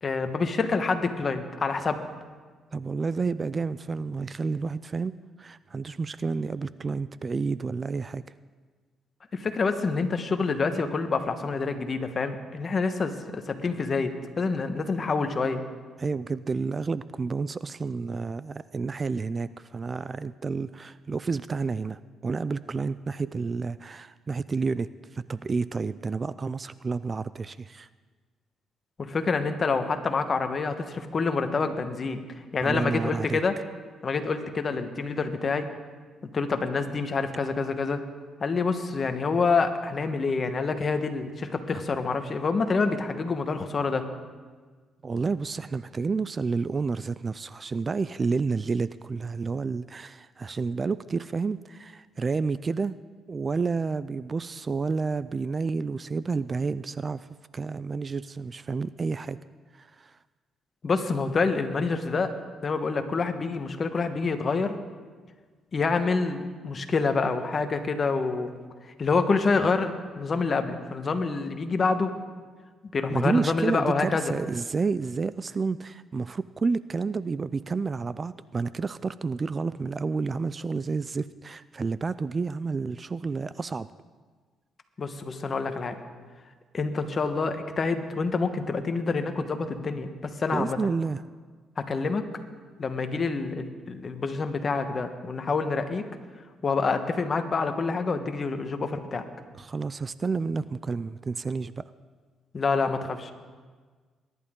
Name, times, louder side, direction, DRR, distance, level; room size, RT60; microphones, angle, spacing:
voice 1, 0.0-2.1 9.3-15.6 29.0-32.2 32.5-33.5 34.0-35.7 36.3-38.0 38.4-44.0 60.8-62.3 62.6-64.7 65.7-68.5 69.0-69.9 70.2-72.1 72.9-74.3 85.0-86.0 86.7-90.8 91.8-92.2 92.8-96.0 96.6-99.2 102.5-103.3, left 4 dB, 40° left, 7 dB, 1.3 m, -27 dB
voice 2, 2.7-8.2 16.0-27.9 32.6-33.4 45.0-53.0 53.3-57.3 57.5-59.4 59.7-60.2 73.1-83.9 90.5-91.2 99.5-101.9, right 4 dB, 35° right, 16 dB, 0.3 m, -30 dB
22.0 x 11.0 x 3.7 m, 1.5 s
cardioid pair, 90°, 0 cm